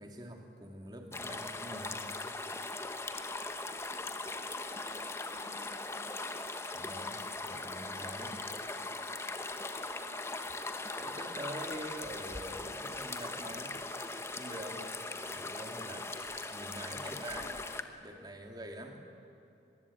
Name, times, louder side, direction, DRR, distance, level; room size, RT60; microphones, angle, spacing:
voice 1, 0.0-2.1 6.7-8.5 11.0-13.8 14.3-14.9 15.3-16.1 16.5-17.5 18.0-19.1, right 1 dB, 25° right, 3 dB, 2.5 m, -45 dB
sound 1, 1.1-17.8, left 2 dB, 15° left, 1.0 m, -40 dB
voice 2, 3.9-6.4 9.4-10.3 17.0-17.6, equal, 45° right, -3 dB, 8.0 m, -59 dB
23.0 x 22.5 x 8.5 m, 2.8 s
head